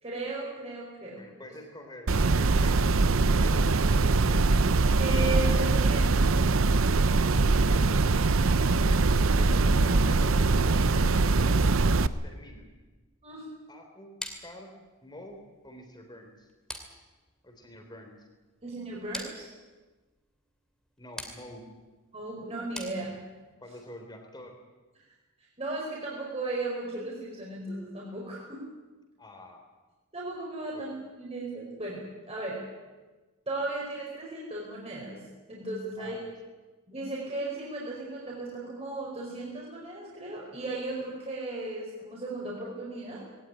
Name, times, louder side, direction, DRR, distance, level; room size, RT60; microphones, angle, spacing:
voice 1, 0.0-1.2 5.0-6.1 13.2-13.4 18.6-19.5 22.1-23.2 25.6-28.6 30.1-32.6 33.5-36.2 36.9-43.2, right 2 dB, 25° right, -4 dB, 4.9 m, -36 dB
voice 2, 1.2-2.9 3.3-4.5 7.5-8.5 8.8-12.7 13.7-14.8 15.0-16.5 17.4-18.3 21.0-21.7 23.6-24.6 29.2-29.6 30.7-30.9 36.0-36.3, left 1 dB, 20° left, 3 dB, 3.4 m, -47 dB
sound 1, 2.1-12.1, right 3 dB, 65° right, 0.7 m, -22 dB
sound 2, 14.2-23.5, left 1 dB, 5° left, 2.6 m, -46 dB
20.0 x 18.0 x 9.9 m, 1.2 s
head